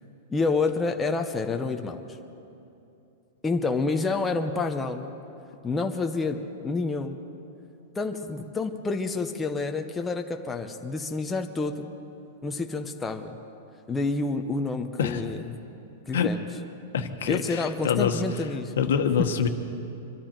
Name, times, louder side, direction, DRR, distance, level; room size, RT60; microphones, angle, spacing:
voice 1, 0.3-2.0 3.4-5.1 5.6-7.2 8.0-11.9 12.4-13.4 13.9-15.5 16.1-16.4 17.3-18.7, left 3 dB, 10° left, 4 dB, 0.6 m, -28 dB
voice 2, 16.9-18.2 18.8-19.5, left 7 dB, 80° left, 7 dB, 1.3 m, -25 dB
24.5 x 12.5 x 4.4 m, 2.8 s
supercardioid pair, 165°, 0 cm